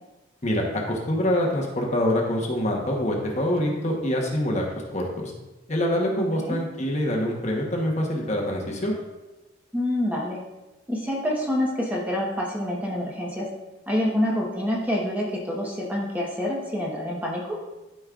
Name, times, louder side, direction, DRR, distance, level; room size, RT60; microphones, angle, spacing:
voice 1, 0.4-4.6 4.9-5.3 5.7-8.9, left 1 dB, 35° left, -1 dB, 1.1 m, -25 dB
voice 2, 6.2-6.6 9.7-10.4 10.9-13.5 13.9-17.6, left 1 dB, 10° right, -3 dB, 1.1 m, -27 dB
12.5 x 5.3 x 2.4 m, 1.1 s
head